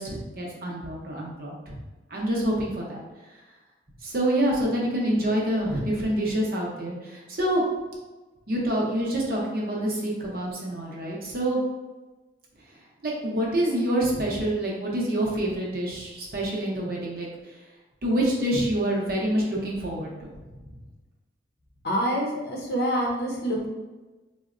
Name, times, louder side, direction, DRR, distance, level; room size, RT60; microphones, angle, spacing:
voice 1, 0.0-1.8 2.1-3.0 4.0-7.6 8.5-11.6 13.0-17.3 18.0-20.3, right 1 dB, 50° right, -3 dB, 0.7 m, -27 dB
voice 2, 21.8-23.7, equal, 60° left, -1 dB, 0.6 m, -26 dB
3.9 x 2.1 x 2.5 m, 1.2 s
head